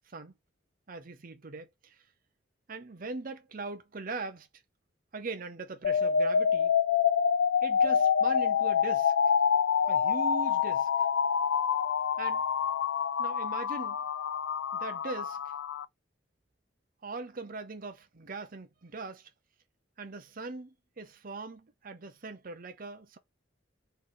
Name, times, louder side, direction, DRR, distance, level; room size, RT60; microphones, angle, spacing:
voice 1, 0.9-2.0 2.7-4.5 5.1-6.7 7.6-9.1 9.9-10.9 12.2-12.4 13.2-14.0 14.7-15.5 17.0-19.3 20.0-23.2, right 3 dB, 50° right, 0.8 m, -41 dB
sound 1, 5.8-15.8, left 7 dB, 90° left, 0.3 m, -27 dB
4.0 x 3.2 x 3.8 m
head